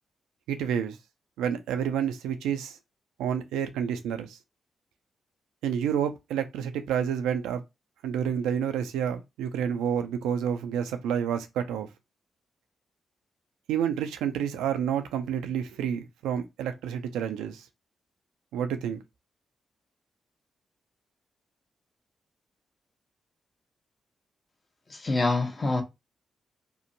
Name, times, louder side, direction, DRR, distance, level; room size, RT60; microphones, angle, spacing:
voice 1, 0.5-1.0 1.4-2.8 3.2-4.4 5.6-7.6 8.0-11.9 13.7-17.7 18.5-19.0, right 8 dB, 90° right, 0.3 m, -29 dB
voice 2, 24.9-25.8, left 3 dB, 40° left, 0.8 m, -26 dB
2.7 x 2.1 x 2.7 m
supercardioid pair, 50°, 0 cm